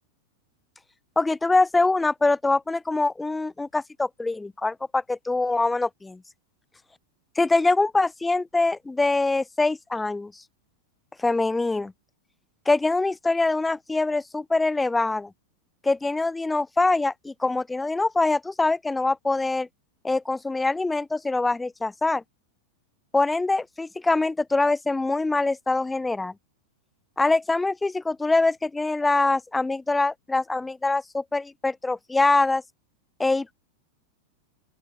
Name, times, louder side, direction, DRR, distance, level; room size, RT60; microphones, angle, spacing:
voice 1, 1.1-6.2 7.4-10.3 11.2-11.9 12.6-15.3 15.8-19.7 20.0-22.2 23.1-26.3 27.2-32.6 33.2-33.5, left 3 dB, 10° left, 1.5 m, -24 dB
open air
figure-of-eight pair, 90°, 0 cm